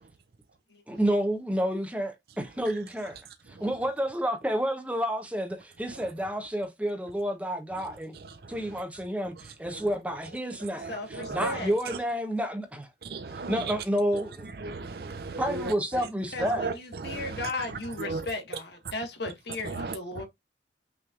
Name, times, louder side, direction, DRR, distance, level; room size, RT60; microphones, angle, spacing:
voice 1, 0.9-3.2 3.5-8.2 8.5-12.9 13.5-14.5 15.4-16.7, equal, 5° right, 0.8 m, -30 dB
voice 2, 10.9-11.8 16.3-20.2, left 2 dB, 75° left, 1.5 m, -36 dB
voice 3, 13.1-13.5 14.6-15.4 16.6-16.7 17.1-17.2 18.1-18.2 19.8-19.9, right 4 dB, 60° right, 0.5 m, -34 dB
5.9 x 3.2 x 2.4 m
head